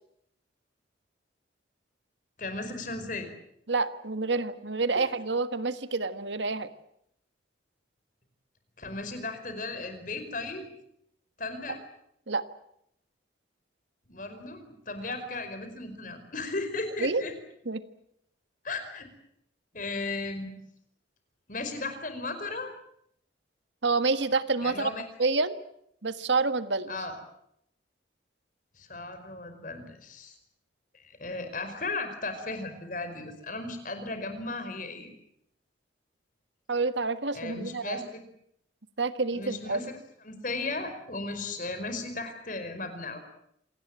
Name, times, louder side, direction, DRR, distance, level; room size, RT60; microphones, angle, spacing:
voice 1, 2.4-3.3 4.9-5.1 8.8-10.7 11.4-11.8 14.1-17.3 18.6-19.1 19.7-20.5 21.5-22.7 24.6-25.1 26.9-27.2 28.8-30.3 30.9-35.1 37.3-38.2 39.3-39.9 40.2-43.2, left 3 dB, 45° left, 8 dB, 5.0 m, -36 dB
voice 2, 3.7-6.7 12.3-12.4 17.0-17.2 17.7-17.8 23.8-24.9 25.2-25.6 26.0-26.9 36.7-38.0 39.0-39.8, right 3 dB, 70° right, 11 dB, 1.5 m, -28 dB
27.0 x 18.5 x 9.1 m, 0.73 s
head